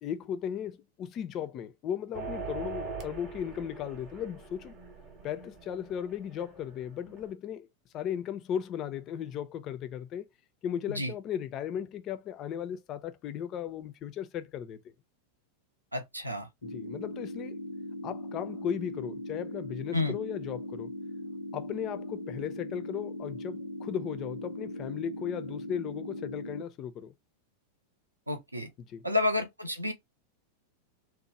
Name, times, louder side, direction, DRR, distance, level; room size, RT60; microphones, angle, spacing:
voice 1, 0.0-4.7 5.2-7.7 7.9-10.3 10.6-14.9 16.6-17.6 18.0-20.9 21.5-27.1 28.8-29.0, left 9 dB, 35° left, 0.4 m, -36 dB
sound 1, 2.1-7.3, right 4 dB, 35° right, 0.8 m, -42 dB
voice 2, 15.9-16.5 19.9-20.2 28.3-28.7 29.0-29.9, left 2 dB, 85° right, 0.6 m, -30 dB
sound 2, 16.6-26.6, left 1 dB, 85° left, 0.5 m, -39 dB
2.9 x 2.0 x 2.7 m
figure-of-eight pair, 90°, 0 cm